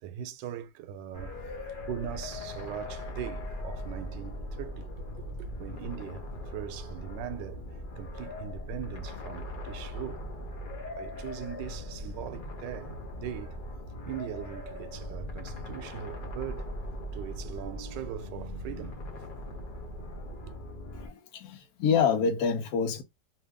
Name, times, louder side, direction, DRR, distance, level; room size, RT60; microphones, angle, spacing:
voice 1, 0.0-1.4 1.9-4.9 5.2-7.6 8.0-10.2 10.9-13.6 14.0-16.7 17.1-19.0 20.0-20.4, right 10 dB, 80° right, 1.2 m, -40 dB
sound 1, 1.1-21.1, left 1 dB, 45° left, 0.6 m, -40 dB
voice 2, 20.9-23.0, left 6 dB, 65° left, 1.2 m, -27 dB
2.8 x 2.8 x 3.3 m
omnidirectional pair, 1.9 m